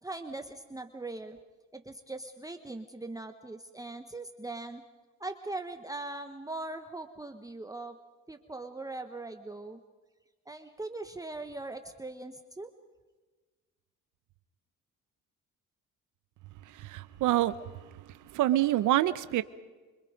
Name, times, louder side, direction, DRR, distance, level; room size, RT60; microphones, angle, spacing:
voice 1, 0.0-1.4 1.7-4.8 5.2-8.0 8.3-9.8 10.5-12.7, right 2 dB, 10° right, 7 dB, 1.3 m, -40 dB
voice 2, 16.8-17.5 18.3-19.4, right 14 dB, 85° right, 13 dB, 0.8 m, -26 dB
27.0 x 25.0 x 5.2 m, 1.3 s
cardioid pair, 90°, 30 cm